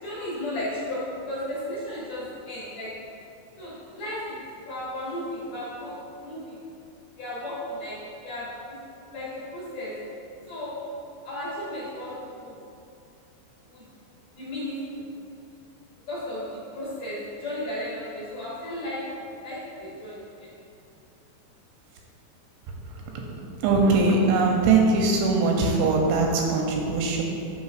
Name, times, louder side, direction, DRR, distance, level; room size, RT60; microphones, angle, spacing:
voice 1, 0.0-2.9 3.6-6.6 7.2-8.5 9.1-9.9 10.5-10.8 11.2-12.5 13.7-13.8 14.3-15.0 16.1-20.5, left 1 dB, 65° left, -9 dB, 2.2 m, -34 dB
voice 2, 23.6-27.2, right 3 dB, 85° right, 0 dB, 2.8 m, -21 dB
9.4 x 6.2 x 2.4 m, 2.5 s
omnidirectional pair, 5.5 m